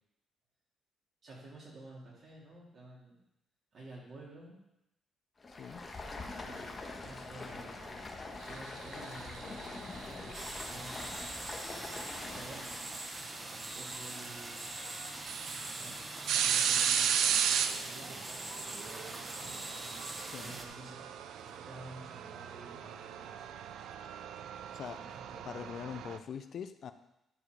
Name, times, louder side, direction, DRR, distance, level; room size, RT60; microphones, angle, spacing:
voice 1, 1.2-3.2 3.7-4.6 6.4-8.1 8.4-11.0 12.3-12.8 13.2-14.6 15.7-19.6 20.4-21.0 21.4-23.5 24.9-25.7, right 2 dB, 50° right, -5 dB, 3.9 m, -51 dB
Stream, 5.4-12.9, left 3 dB, 30° left, 1.4 m, -44 dB
voice 2, 5.5-5.8 20.3-20.5 24.7-25.0 25.4-26.9, left 8 dB, 60° left, 10 dB, 0.5 m, -43 dB
sound 1, 8.9-10.4 12.2-12.3 13.9-14.0 14.5-14.6 15.0-26.2, right 8 dB, 80° right, 0.5 m, -35 dB
sound 2, 10.3-20.7, right 2 dB, 25° right, 1.0 m, -43 dB
11.0 x 4.9 x 4.9 m, 0.88 s
cardioid pair, 90°, 0 cm